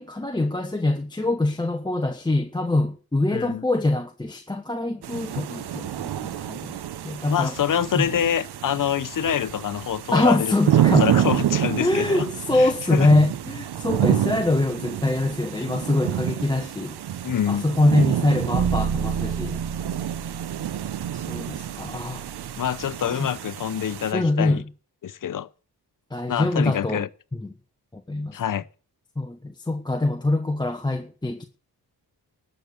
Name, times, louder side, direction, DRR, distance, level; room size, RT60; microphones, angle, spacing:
voice 1, 0.0-6.8 7.0-7.5 7.9-8.0 10.1-11.1 11.8-16.9 17.5-19.5 21.1-22.3 23.2-23.3 24.1-24.6 26.1-27.0 27.4-27.5 27.9-28.4 29.2-31.4, left 2 dB, 10° left, 1.0 m, -24 dB
voice 2, 3.3-3.6 7.3-12.3 12.6-13.1 17.2-17.7 22.6-24.6 25.0-25.5 26.3-27.1 28.3-28.7, left 9 dB, 55° left, 0.8 m, -26 dB
sound 1, 5.0-24.1, right 11 dB, 80° right, 0.9 m, -28 dB
sound 2, 18.5-22.7, right 7 dB, 50° right, 1.3 m, -30 dB
13.0 x 6.6 x 8.2 m
cardioid pair, 90°, 39 cm